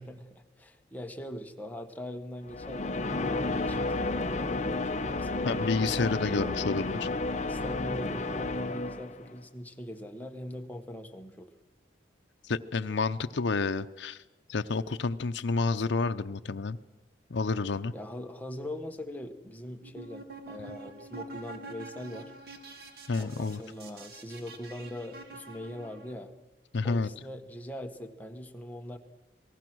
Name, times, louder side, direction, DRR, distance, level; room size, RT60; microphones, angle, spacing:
voice 1, 0.0-6.6 7.3-11.5 17.9-22.3 23.2-26.3 26.8-29.0, left 1 dB, 10° left, 5 dB, 1.3 m, -41 dB
sound 1, 2.5-9.4, left 2 dB, 40° left, 0.8 m, -32 dB
voice 2, 5.4-7.1 12.4-14.2 14.5-16.8 17.3-17.9 23.1-23.6 26.7-27.1, left 4 dB, 75° left, 8 dB, 0.6 m, -29 dB
sound 2, 19.8-26.1, right 2 dB, 55° right, 2.3 m, -46 dB
27.5 x 19.0 x 6.2 m, 1.2 s
head